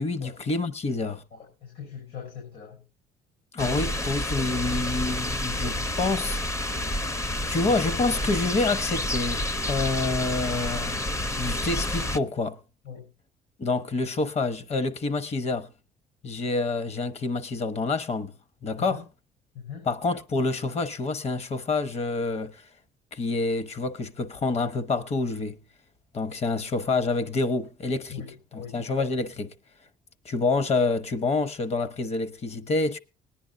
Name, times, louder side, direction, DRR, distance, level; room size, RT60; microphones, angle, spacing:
voice 1, 0.0-1.2 3.5-6.4 7.5-11.0 11.3-12.6 13.6-15.7 16.2-18.3 18.6-19.0 19.8-22.6 23.1-25.6 26.1-28.2 28.5-29.5 30.2-33.0, left 3 dB, 40° left, 1.0 m, -27 dB
voice 2, 1.3-2.8 12.8-13.0 18.8-19.0 19.5-19.9 28.1-28.8, left 7 dB, 75° left, 5.5 m, -41 dB
sound 1, 3.6-12.2, left 1 dB, 15° left, 0.6 m, -29 dB
20.0 x 10.0 x 2.6 m
cardioid pair, 110°, 17 cm